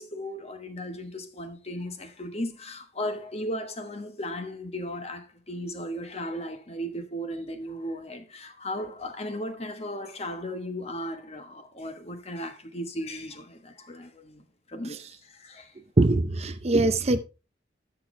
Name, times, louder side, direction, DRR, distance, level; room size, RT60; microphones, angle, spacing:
voice 1, 0.0-14.4 14.7-15.7, equal, 35° left, 1.2 m, -36 dB
voice 2, 16.0-17.2, right 2 dB, 35° right, 0.6 m, -22 dB
13.5 x 6.0 x 3.2 m
head